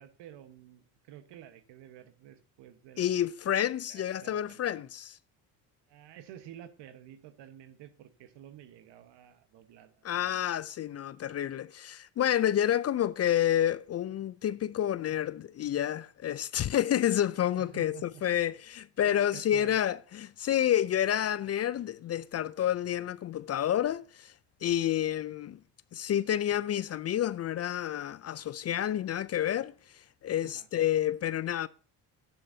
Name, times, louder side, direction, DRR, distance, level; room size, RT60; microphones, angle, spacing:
voice 1, 0.0-3.1 3.9-4.8 5.9-10.4 17.6-18.2 19.0-19.8 30.4-30.7, right 11 dB, 70° right, 1.3 m, -51 dB
voice 2, 3.0-5.2 10.0-24.3 24.6-25.6 25.9-31.7, left 11 dB, 35° left, 0.4 m, -29 dB
12.0 x 10.0 x 2.7 m
supercardioid pair, 75°, 44 cm